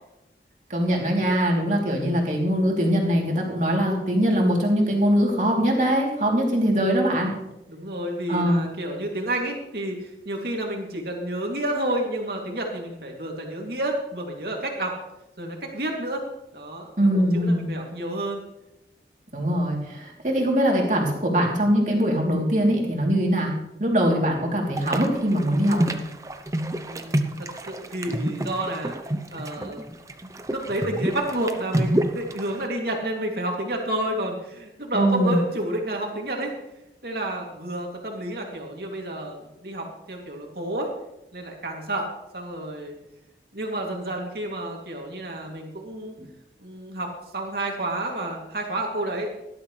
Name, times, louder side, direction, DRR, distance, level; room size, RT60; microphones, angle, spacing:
voice 1, 0.7-7.3 8.3-8.6 17.0-17.7 19.3-23.5 23.8-25.9 34.9-35.4, equal, 45° right, -1 dB, 3.1 m, -22 dB
voice 2, 1.8-2.1 6.6-6.7 7.7-15.0 15.4-16.3 16.5-18.4 26.8-29.0 29.3-29.8 30.5-36.5 37.0-40.9 41.3-42.9 43.5-46.1 46.6-49.3, right 1 dB, 60° right, 0 dB, 2.7 m, -30 dB
sound 1, 24.8-32.7, right 1 dB, 20° right, 0.7 m, -28 dB
17.5 x 12.0 x 3.3 m, 0.89 s
head